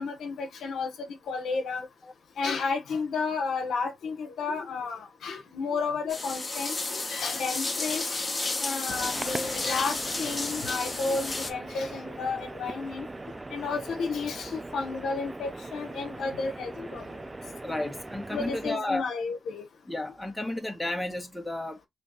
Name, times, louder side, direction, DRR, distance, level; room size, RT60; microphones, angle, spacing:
voice 1, 0.0-1.8 2.4-8.0 8.6-13.1 13.5-17.0 18.3-19.6, left 4 dB, 75° left, 0.8 m, -32 dB
sound 1, 6.1-11.5, left 3 dB, 30° left, 1.1 m, -32 dB
sound 2, 8.9-18.7, right 2 dB, 25° right, 0.5 m, -40 dB
voice 2, 17.6-19.0 19.9-21.9, left 1 dB, 10° left, 1.2 m, -33 dB
3.3 x 2.9 x 3.9 m
supercardioid pair, 60°, 0 cm